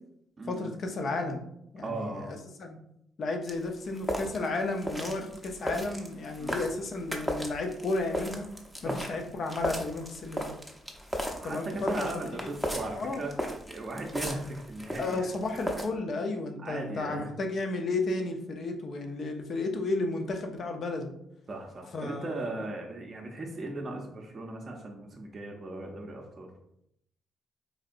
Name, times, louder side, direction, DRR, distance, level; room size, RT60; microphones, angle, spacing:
voice 1, 0.5-1.4 1.7-2.8 3.2-8.5 8.8-10.5 11.4-12.2 13.0-13.3 15.0-21.1 21.9-22.6, left 2 dB, 55° left, 4 dB, 0.6 m, -33 dB
voice 2, 1.8-2.3 5.2-5.4 6.4-6.6 8.8-9.0 11.4-13.3 13.7-15.3 16.6-17.3 21.5-26.5, right 2 dB, 35° right, -1 dB, 0.6 m, -37 dB
sound 1, 3.5-15.8, equal, 5° left, 0.7 m, -37 dB
4.3 x 2.7 x 2.5 m, 0.75 s
cardioid pair, 90°, 0 cm